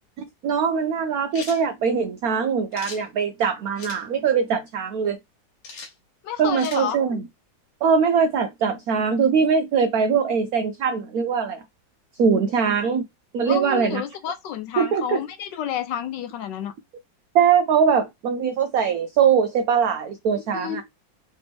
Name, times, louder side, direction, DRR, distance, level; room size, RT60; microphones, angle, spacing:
voice 1, 0.4-5.2 6.4-7.2 7.8-11.6 12.2-13.0 13.3-14.0 14.8-15.2 17.3-20.8, right 6 dB, 85° right, 0.7 m, -21 dB
sound 1, 1.3-1.6 2.7-3.0 3.8-4.0 5.6-5.9 6.6-6.8, left 4 dB, 50° left, 0.9 m, -38 dB
voice 2, 6.2-7.0 13.5-16.7 20.5-20.8, left 9 dB, 75° left, 1.1 m, -30 dB
3.3 x 3.1 x 3.4 m
omnidirectional pair, 2.1 m